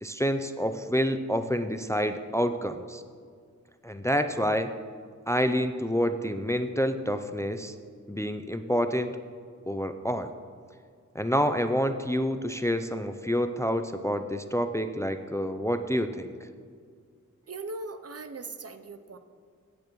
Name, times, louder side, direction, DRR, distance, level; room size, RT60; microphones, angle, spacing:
voice 1, 0.0-3.0 3.8-4.7 5.3-7.7 8.1-9.1 9.7-10.3 11.1-16.3, equal, 10° left, 8 dB, 0.4 m, -28 dB
voice 2, 17.5-19.2, right 3 dB, 50° right, 9 dB, 0.7 m, -39 dB
16.0 x 9.0 x 3.1 m, 2.1 s
wide cardioid pair, 90°, 31 cm